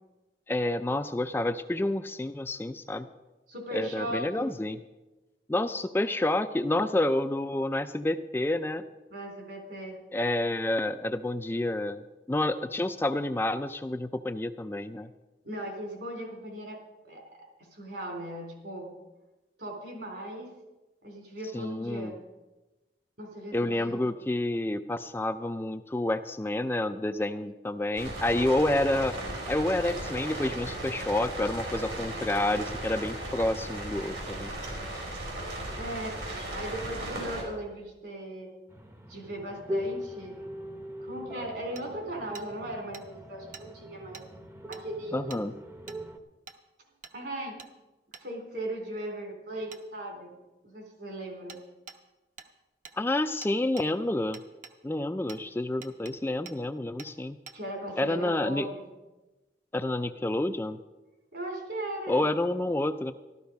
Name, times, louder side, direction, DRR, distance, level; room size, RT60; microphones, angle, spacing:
voice 1, 0.5-3.1 3.7-4.8 5.5-8.8 10.1-12.0 12.3-15.1 21.5-22.1 23.5-29.2 29.5-34.5 45.1-45.5 53.0-54.4 54.8-57.4 58.0-58.7 59.7-60.8 62.1-63.1, left 1 dB, 10° left, 9 dB, 0.3 m, -29 dB
voice 2, 3.5-4.5 9.1-10.0 15.4-16.8 17.0-17.2 17.6-18.9 19.6-20.5 21.0-22.1 23.2-24.1 35.7-36.2 36.5-38.5 39.1-40.4 41.0-44.2 44.7-45.4 47.1-47.6 48.2-50.3 50.6-51.6 57.5-58.8 61.3-62.3, right 1 dB, 65° right, 1 dB, 3.8 m, -38 dB
sound 1, 27.9-37.4, right 1 dB, 85° right, 4.6 m, -36 dB
sound 2, 38.7-46.2, equal, 15° right, 0.7 m, -40 dB
Hammer, 41.8-41.9 42.3-42.5 42.9-43.0 43.5-43.7 44.1-44.3 44.7-44.8 45.3-45.4 45.9-46.0 46.5-46.6 47.0-47.2 47.6-47.7 48.1-48.3 49.7-49.8 51.5-51.6 51.9-52.0 52.4-52.5 52.8-53.0 53.4-53.9 54.3-54.8 55.3-55.4 55.8-56.1 56.5-56.6 57.0-57.1 57.5-57.6, right 5 dB, 45° right, 0.9 m, -46 dB
13.5 x 13.0 x 5.2 m, 1.1 s
head